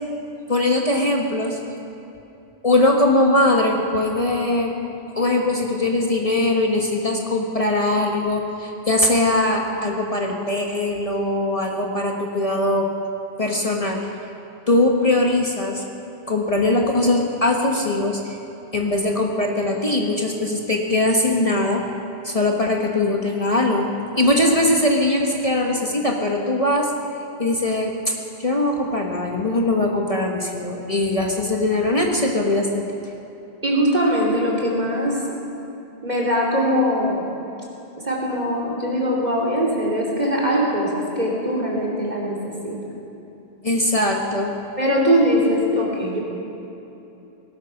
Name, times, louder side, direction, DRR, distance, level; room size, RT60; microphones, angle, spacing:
voice 1, 0.5-1.6 2.6-4.7 5.1-12.9 13.4-14.1 14.7-15.8 16.3-18.4 18.7-21.8 22.2-23.9 24.2-26.9 27.4-28.1 28.4-32.9 43.6-44.5, left 2 dB, 35° left, 0 dB, 1.3 m, -21 dB
voice 2, 33.6-35.2 36.0-37.2 38.0-42.8 44.8-46.2, equal, 45° right, -3 dB, 3.3 m, -21 dB
19.0 x 13.0 x 5.9 m, 3.0 s
omnidirectional pair, 1.0 m